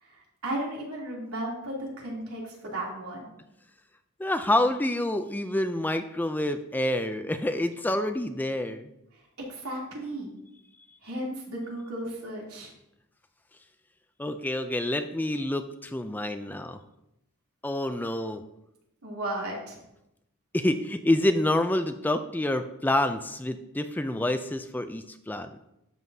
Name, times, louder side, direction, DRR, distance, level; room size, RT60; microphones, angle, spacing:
voice 1, 0.0-3.3 9.5-10.3 11.0-12.7 19.0-19.8, right 1 dB, 80° right, -3 dB, 2.9 m, -35 dB
voice 2, 4.2-8.9 14.2-16.8 17.6-18.4 20.5-25.5, left 1 dB, 10° left, 9 dB, 0.3 m, -27 dB
12.0 x 7.2 x 2.7 m, 0.84 s
head